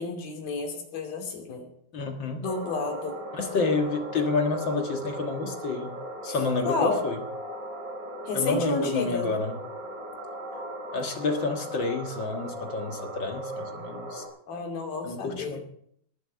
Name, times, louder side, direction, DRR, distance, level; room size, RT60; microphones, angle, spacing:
voice 1, 0.0-1.7 2.4-3.2 6.3-6.4 6.7-7.0 8.3-9.3 14.5-15.6, left 3 dB, 75° left, 3 dB, 4.6 m, -31 dB
voice 2, 1.9-2.4 3.3-6.0 6.2-7.2 8.3-9.6 10.9-14.2 15.0-15.6, left 3 dB, 50° left, 4 dB, 1.5 m, -29 dB
sound 1, 2.4-14.3, right 1 dB, 50° right, 6.8 m, -38 dB
19.5 x 7.0 x 8.5 m, 0.67 s
omnidirectional pair, 4.2 m